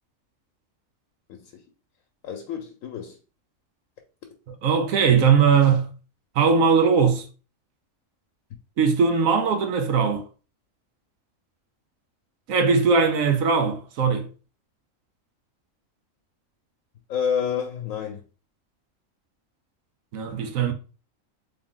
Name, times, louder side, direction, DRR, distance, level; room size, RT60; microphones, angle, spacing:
voice 1, 2.2-3.2 17.1-18.2, left 7 dB, 85° left, 1.1 m, -28 dB
voice 2, 4.6-5.9 6.4-7.3 8.8-10.2 12.5-14.3 20.1-20.7, right 5 dB, 85° right, 1.2 m, -20 dB
3.6 x 3.3 x 3.7 m
omnidirectional pair, 1.4 m